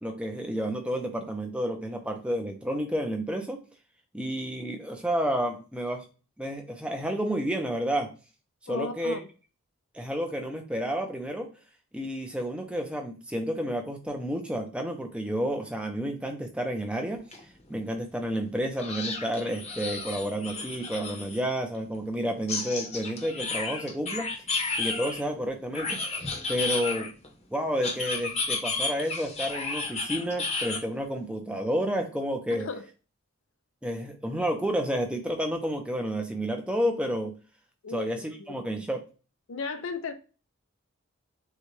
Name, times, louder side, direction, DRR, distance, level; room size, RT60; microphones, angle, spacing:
voice 1, 0.0-3.6 4.1-6.0 6.4-8.1 8.6-9.2 9.9-11.5 11.9-17.2 17.7-24.3 24.8-26.0 26.5-27.1 27.5-32.7 33.8-37.3 37.9-39.0, equal, 5° right, 0.6 m, -30 dB
voice 2, 8.7-9.3 32.6-32.9 37.8-38.1 38.4-38.6 39.5-40.1, left 4 dB, 65° left, 0.5 m, -35 dB
sound 1, 17.3-17.4 17.8-17.9 18.8-21.4 22.5-25.2 25.7-27.3 27.8-30.8, left 3 dB, 30° left, 0.8 m, -32 dB
6.6 x 2.3 x 3.2 m
head